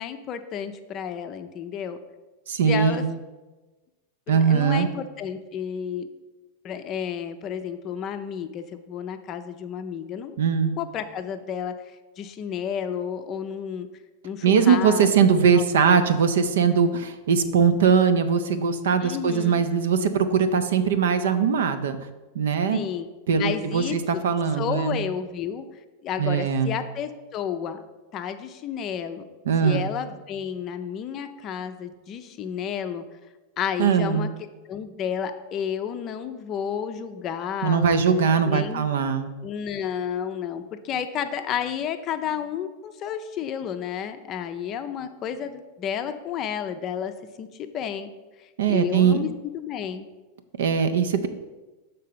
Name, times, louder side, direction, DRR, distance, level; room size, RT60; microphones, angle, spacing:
voice 1, 0.0-2.0 2.6-3.0 4.3-6.1 6.6-10.4 10.8-13.9 14.2-16.0 19.0-19.6 22.7-23.1 23.4-24.2 24.6-25.7 26.0-27.8 28.1-29.2 29.6-33.0 33.6-34.3 34.7-38.0 38.4-38.9 39.4-47.1 47.4-48.1 48.4-50.1, left 8 dB, 35° left, 9 dB, 0.5 m, -31 dB
voice 2, 2.5-3.1 4.3-4.9 10.4-10.8 14.4-22.0 22.3-22.8 23.3-25.0 26.2-26.7 29.5-29.9 33.8-34.3 37.6-39.3 48.6-49.2 50.6-51.3, right 6 dB, 60° right, 11 dB, 0.5 m, -21 dB
6.4 x 4.0 x 5.5 m, 1.2 s
figure-of-eight pair, 90°, 0 cm